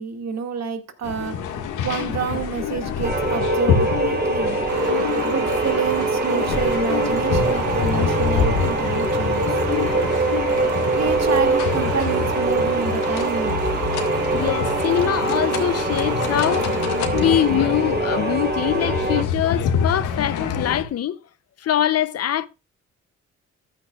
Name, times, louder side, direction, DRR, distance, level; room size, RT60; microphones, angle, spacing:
voice 1, 0.0-1.4 1.8-4.6 5.2-9.5 11.0-13.6, right 6 dB, 60° right, 2.1 m, -28 dB
sound 1, 1.0-20.8, left 6 dB, 90° left, 1.9 m, -27 dB
sound 2, 3.0-19.2, right 2 dB, 35° right, 3.7 m, -23 dB
sound 3, 4.7-19.6, right 9 dB, 75° right, 1.4 m, -35 dB
voice 2, 14.3-16.7 17.1-21.2 21.6-22.5, left 10 dB, 55° left, 0.7 m, -23 dB
14.0 x 9.8 x 2.4 m
cardioid pair, 90°, 30 cm